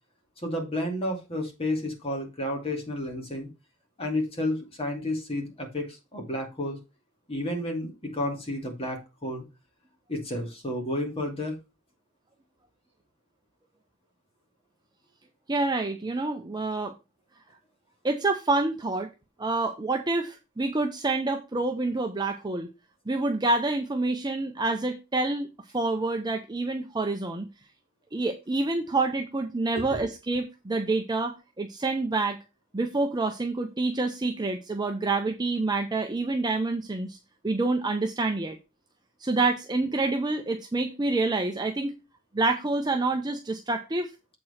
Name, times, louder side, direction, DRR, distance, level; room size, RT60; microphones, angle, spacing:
voice 1, 0.4-3.5 4.0-6.8 7.3-9.4 10.1-11.6 29.9-30.0, left 1 dB, 30° left, 2 dB, 2.4 m, -31 dB
voice 2, 15.5-16.9 18.0-19.1 19.4-22.7 23.1-27.5 28.1-32.4 32.7-37.2 37.4-38.6 39.2-42.0 42.3-44.1, right 3 dB, 20° right, 4 dB, 0.7 m, -27 dB
7.7 x 4.6 x 5.7 m, 0.27 s
head